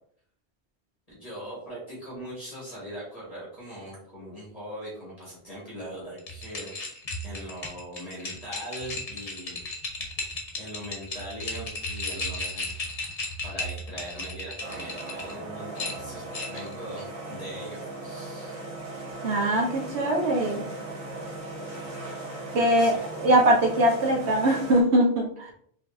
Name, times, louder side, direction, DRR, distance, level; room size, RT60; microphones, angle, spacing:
voice 1, 1.1-6.7 7.2-9.6 10.5-12.7 13.4-18.6 22.8-23.2, right 1 dB, 35° left, -7 dB, 1.8 m, -40 dB
sound 1, 6.2-15.3 15.8-16.7, left 2 dB, 65° left, 1.2 m, -35 dB
sound 2, 14.6-24.8, right 2 dB, 35° right, 1.1 m, -38 dB
voice 2, 19.2-20.7 22.5-22.9 23.2-25.5, right 1 dB, 85° right, -1 dB, 1.3 m, -22 dB
4.9 x 3.2 x 2.7 m, 0.65 s
omnidirectional pair, 1.1 m